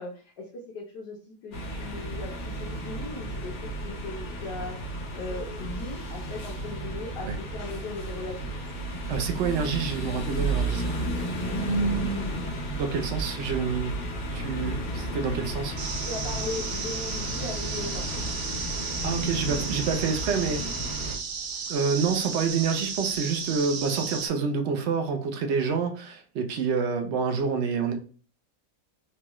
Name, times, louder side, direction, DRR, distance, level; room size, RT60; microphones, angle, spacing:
voice 1, 0.0-4.8 5.1-8.5 16.0-18.1, left 3 dB, 80° left, -2 dB, 1.5 m, -38 dB
sound 1, 1.5-21.2, right 1 dB, 50° left, 1.1 m, -32 dB
voice 2, 8.9-11.0 12.8-14.0 14.3-15.8 19.0-20.8 21.7-27.9, right 5 dB, 65° right, 5 dB, 0.7 m, -28 dB
sound 2, 13.8-20.8, left 3 dB, 15° left, 1.1 m, -44 dB
sound 3, 15.8-24.3, right 6 dB, 85° right, 1.3 m, -34 dB
4.5 x 2.3 x 3.0 m, 0.39 s
omnidirectional pair, 1.8 m